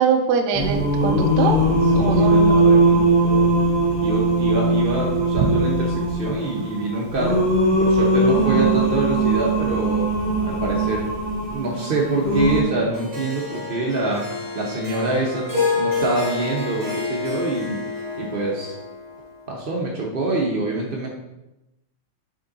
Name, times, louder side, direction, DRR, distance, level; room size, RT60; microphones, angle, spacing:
voice 1, 0.0-1.6 1.9-2.5, right 6 dB, 70° right, 4 dB, 1.0 m, -22 dB
Singing, 0.5-12.6, right 1 dB, 25° left, 1.2 m, -20 dB
voice 2, 2.0-3.5 4.0-10.1 10.4-11.1 11.5-14.3 14.5-18.7 19.5-21.1, right 2 dB, 85° right, -2 dB, 0.5 m, -26 dB
Harp, 12.9-19.3, left 4 dB, 15° right, 0.9 m, -28 dB
6.3 x 3.8 x 4.0 m, 0.94 s
omnidirectional pair, 2.3 m